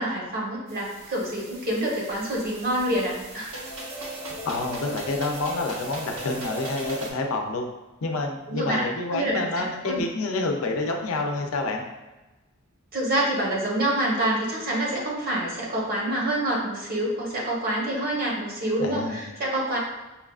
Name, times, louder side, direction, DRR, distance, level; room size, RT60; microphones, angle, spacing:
voice 1, 0.0-3.5 8.5-10.0 12.9-19.8, right 1 dB, 45° right, -3 dB, 1.0 m, -27 dB
sound 1, 0.7-7.1, right 1 dB, 80° right, 0.9 m, -38 dB
voice 2, 4.3-7.7 8.0-11.8 18.8-19.2, left 2 dB, 85° left, 2 dB, 0.6 m, -28 dB
5.6 x 2.4 x 2.3 m, 1.1 s
head